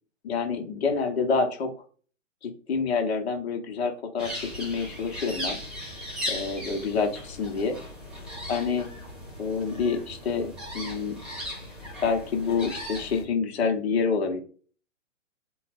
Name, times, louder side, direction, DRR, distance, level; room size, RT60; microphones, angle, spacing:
voice 1, 0.2-1.7 2.4-5.6 6.3-7.8 8.5-8.9 9.4-11.2 12.0-14.4, left 5 dB, 55° left, 3 dB, 1.1 m, -27 dB
sound 1, 4.2-13.2, equal, ahead, 0.4 m, -37 dB
3.7 x 2.3 x 4.2 m, 0.42 s
figure-of-eight pair, 125°, 39 cm